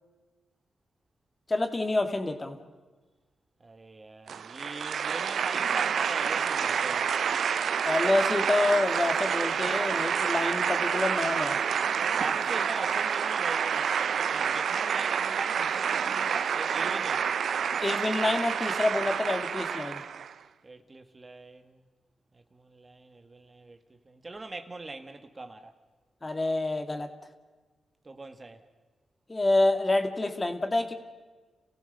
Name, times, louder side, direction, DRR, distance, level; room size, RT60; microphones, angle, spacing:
voice 1, 1.5-2.6 7.8-11.6 17.8-20.0 26.2-27.1 29.3-30.9, left 2 dB, 30° left, 2.3 m, -27 dB
voice 2, 3.6-7.2 12.2-17.3 20.6-21.9 22.3-25.7 28.0-28.6, right 2 dB, 35° right, 1.7 m, -42 dB
sound 1, 4.3-20.3, right 7 dB, 75° right, 0.7 m, -28 dB
30.0 x 15.5 x 6.8 m
supercardioid pair, 55°, 0 cm